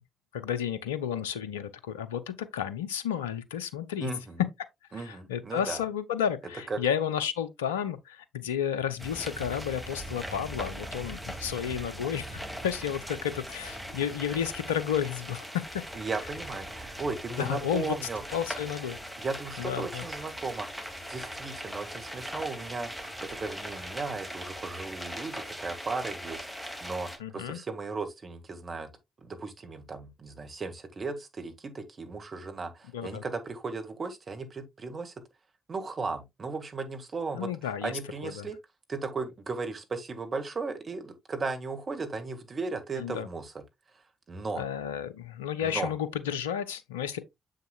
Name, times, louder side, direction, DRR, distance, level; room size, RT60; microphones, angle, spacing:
voice 1, 0.3-4.1 4.9-15.8 17.4-18.0 18.3-19.0 19.6-20.0 27.2-27.6 32.9-33.2 37.3-37.9 38.2-38.5 43.0-43.3 44.6-47.2, left 9 dB, 85° left, 0.6 m, -32 dB
voice 2, 4.0-4.4 4.9-5.8 6.7-6.8 15.9-18.2 19.2-22.9 23.2-26.5 26.8-28.9 29.2-35.1 35.7-37.5 37.8-38.6 38.9-43.6 44.3-44.6 45.6-45.9, right 4 dB, 40° right, 1.8 m, -36 dB
sound 1, 9.0-27.2, equal, ahead, 2.4 m, -40 dB
7.2 x 6.5 x 2.3 m
hypercardioid pair, 40°, 0 cm